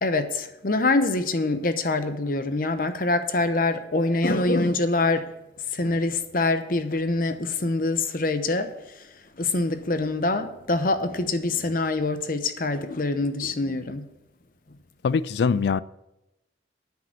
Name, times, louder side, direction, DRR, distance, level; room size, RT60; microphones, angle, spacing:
voice 1, 0.0-5.3 5.7-9.1 9.4-14.1, left 2 dB, 50° left, 0.9 m, -25 dB
voice 2, 15.0-15.8, left 5 dB, 70° left, 0.4 m, -22 dB
9.2 x 7.8 x 6.6 m
head